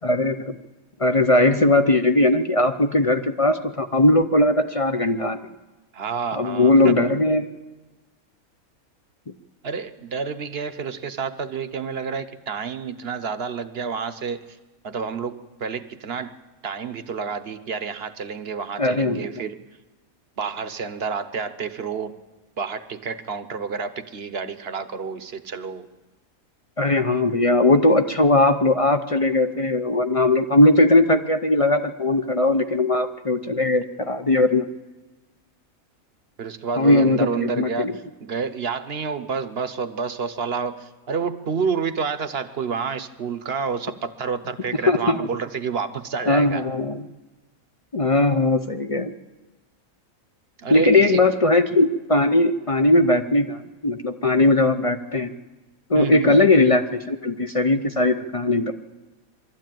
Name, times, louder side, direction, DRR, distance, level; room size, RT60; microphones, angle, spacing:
voice 1, 0.0-0.5 1.0-5.4 6.4-7.5 18.8-19.3 26.8-34.7 36.8-37.9 44.9-45.3 46.3-47.0 47.9-49.1 50.7-55.3 55.9-58.7, left 2 dB, 40° left, 8 dB, 0.4 m, -19 dB
voice 2, 5.9-7.2 9.6-14.4 14.8-16.4 16.6-19.6 20.4-22.2 22.6-25.9 36.4-46.7 50.6-51.2 55.9-56.4, right 5 dB, 50° right, 11 dB, 1.0 m, -29 dB
22.5 x 13.0 x 9.1 m, 1.2 s
omnidirectional pair, 1.6 m